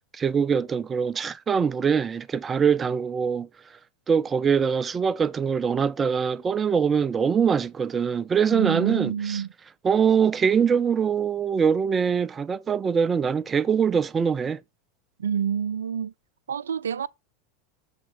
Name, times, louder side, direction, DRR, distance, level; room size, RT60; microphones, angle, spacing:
voice 1, 0.1-3.5 4.1-9.4 9.8-14.6, right 6 dB, 25° right, 0.5 m, -23 dB
voice 2, 8.5-9.5 15.2-16.1 16.5-17.1, right 8 dB, 80° right, 0.4 m, -28 dB
6.9 x 4.4 x 6.3 m
hypercardioid pair, 90°, 0 cm